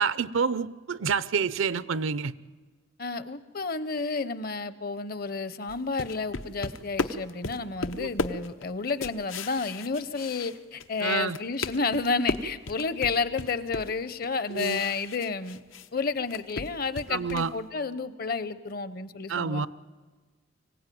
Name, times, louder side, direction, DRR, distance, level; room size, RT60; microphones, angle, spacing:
voice 1, 0.0-2.3 8.0-8.1 11.0-11.4 14.5-14.8 17.1-17.5 19.3-19.7, right 5 dB, 85° right, 18 dB, 0.6 m, -28 dB
voice 2, 3.0-15.6 15.9-19.7, left 4 dB, 50° left, 15 dB, 0.8 m, -31 dB
sound 1, 5.7-11.0 11.3-15.9 16.2-17.6, left 3 dB, 85° left, 0.9 m, -35 dB
24.5 x 16.0 x 9.2 m, 1.4 s
head